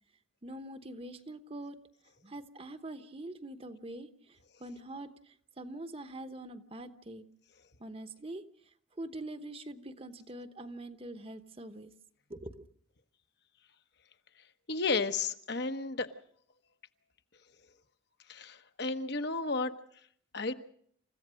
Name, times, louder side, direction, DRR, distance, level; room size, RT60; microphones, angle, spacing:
voice 1, 0.4-1.8 2.2-7.2 7.8-11.9 12.3-12.6, right 1 dB, 30° right, 10 dB, 1.0 m, -44 dB
voice 2, 14.7-16.1 18.3-19.7 20.3-20.5, left 3 dB, 55° left, 8 dB, 1.0 m, -32 dB
28.5 x 15.0 x 6.3 m, 0.66 s
head